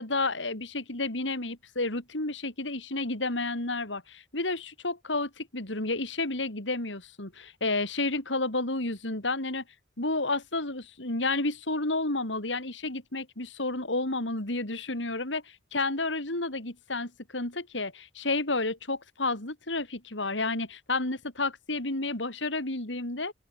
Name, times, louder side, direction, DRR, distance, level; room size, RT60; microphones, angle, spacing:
voice 1, 0.0-9.6 10.0-23.3, left 2 dB, 85° left, 4.3 m, -31 dB
open air
head